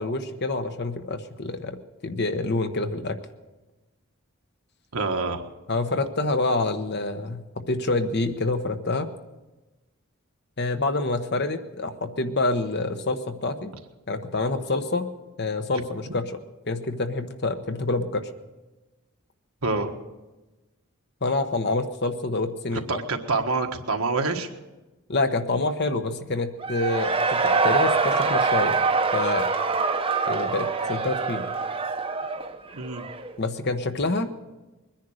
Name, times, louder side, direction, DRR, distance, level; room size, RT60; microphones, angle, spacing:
voice 1, 0.0-1.8 2.0-3.2 5.7-9.1 10.6-13.7 14.1-15.1 15.4-16.3 16.7-18.3 21.2-23.0 25.1-28.8 29.1-29.5 30.3-31.5 33.4-34.3, left 2 dB, 50° left, 8 dB, 1.0 m, -27 dB
voice 2, 4.9-5.5 19.6-19.9 22.9-24.5 32.7-33.0, right 3 dB, 75° right, 4 dB, 1.5 m, -26 dB
Cheering / Crowd, 26.6-33.3, right 4 dB, 25° right, 0.8 m, -24 dB
22.0 x 10.5 x 6.5 m, 1.1 s
head